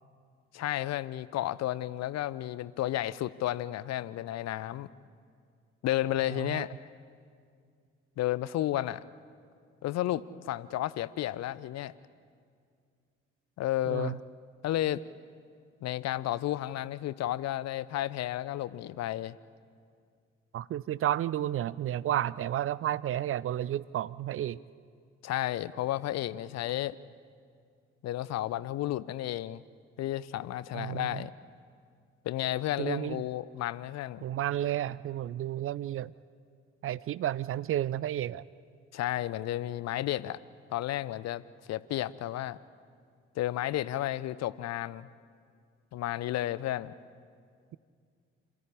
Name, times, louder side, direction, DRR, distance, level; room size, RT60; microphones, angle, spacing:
voice 1, 0.5-4.9 5.8-6.7 8.2-9.0 9.8-11.9 13.6-14.2 14.6-15.0 15.8-19.4 25.2-27.0 28.0-29.6 30.0-31.3 32.2-34.2 38.9-40.4 40.7-42.6 43.4-45.1 45.9-46.9, left 14 dB, 50° left, 18 dB, 0.7 m, -32 dB
voice 2, 6.3-6.7 13.9-14.2 20.5-24.6 30.7-31.2 32.8-33.2 34.2-36.1 36.8-38.4, right 12 dB, 40° right, 20 dB, 0.5 m, -32 dB
27.0 x 13.5 x 9.9 m, 2.2 s
figure-of-eight pair, 45°, 34 cm